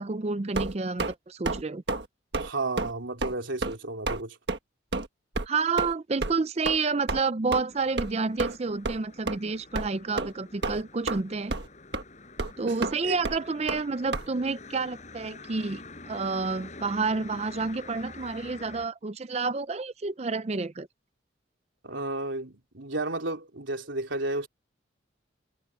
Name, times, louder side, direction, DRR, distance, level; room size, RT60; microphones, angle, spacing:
voice 1, 0.0-1.8 5.5-11.5 12.6-20.9, right 4 dB, 35° right, 0.5 m, -29 dB
sound 1, 0.5-1.1 1.4-1.6 1.9-2.1 2.3-2.5 2.8-2.9 3.2-3.3 3.6-3.8 4.1-4.2 4.5-4.6 4.9-5.1 5.3-5.5 5.8-5.9 6.2-6.3 6.6-6.8 7.1-7.2 7.5-7.6 8.0-8.1 8.4-8.6 8.8-9.0 9.3-9.4 9.7-9.9 10.2-10.3 10.6-11.2 11.5-11.7 11.9-12.0 12.4-12.5 12.8-12.9 13.2-13.4 13.7-13.8 14.1-14.2, right 3 dB, 60° right, 1.5 m, -30 dB
voice 2, 2.4-4.4 12.6-13.2 21.8-24.5, right 2 dB, 75° right, 3.4 m, -32 dB
sound 2, 7.7-18.9, left 3 dB, 35° left, 7.9 m, -47 dB
head